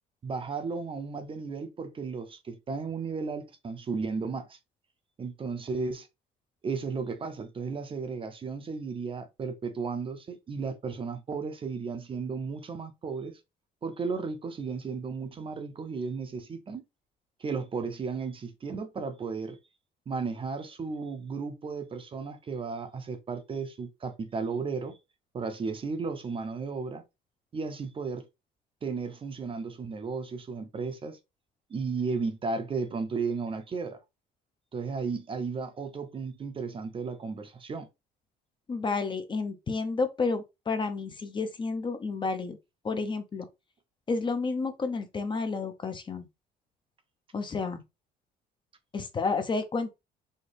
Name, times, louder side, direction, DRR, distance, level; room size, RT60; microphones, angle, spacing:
voice 1, 0.2-4.6 5.2-6.1 6.6-13.4 13.8-16.8 17.4-19.6 20.1-25.0 25.3-27.0 27.5-28.3 28.8-31.2 31.7-34.0 34.7-37.9, right 4 dB, 30° right, 0.7 m, -34 dB
voice 2, 38.7-42.6 42.8-43.5 44.1-46.3 47.3-47.8 48.9-49.9, left 4 dB, 30° left, 0.7 m, -30 dB
4.2 x 2.2 x 3.4 m
cardioid pair, 110°, 17 cm